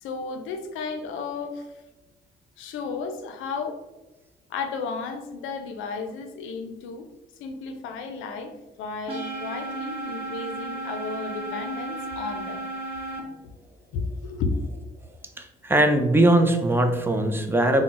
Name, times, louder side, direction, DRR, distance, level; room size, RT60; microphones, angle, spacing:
voice 1, 0.0-1.7 2.6-3.8 4.5-7.1 7.4-8.5 8.8-12.7 13.9-14.6, left 4 dB, 90° left, 7 dB, 0.4 m, -33 dB
sound 1, 9.1-13.2, right 2 dB, 30° right, 0.7 m, -34 dB
voice 2, 15.4-17.8, right 1 dB, 10° right, 6 dB, 0.3 m, -20 dB
2.3 x 2.0 x 3.8 m, 1.1 s
cardioid pair, 90°, 20 cm